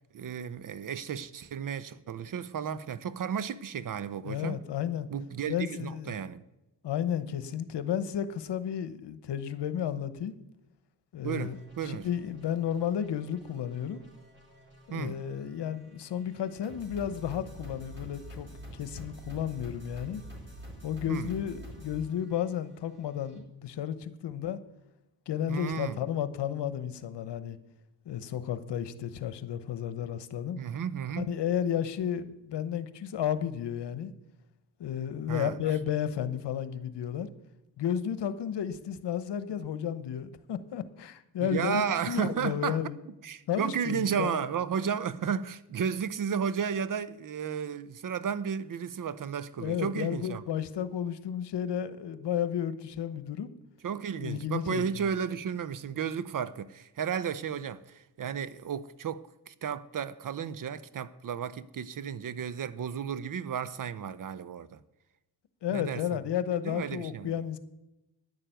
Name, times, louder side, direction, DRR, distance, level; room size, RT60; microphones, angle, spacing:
voice 1, 0.1-4.6 5.1-6.4 11.2-12.1 14.9-15.2 21.1-21.3 25.5-26.0 30.6-31.3 35.3-35.6 41.4-42.8 43.2-50.4 53.8-64.8 65.7-66.2 66.6-67.3, right 7 dB, 45° right, 0.7 m, -33 dB
voice 2, 4.3-5.1 5.5-6.2 6.8-10.3 11.1-14.0 14.9-18.5 18.7-20.2 20.8-24.6 25.3-27.6 28.0-30.6 31.2-34.1 34.8-37.3 37.8-41.8 42.1-43.0 43.5-44.5 49.6-53.5 54.2-55.0 65.6-67.6, left 9 dB, 65° left, 1.1 m, -32 dB
sound 1, 11.3-23.4, right 1 dB, 25° right, 4.2 m, -48 dB
10.5 x 6.7 x 9.1 m
cardioid pair, 75°, 45 cm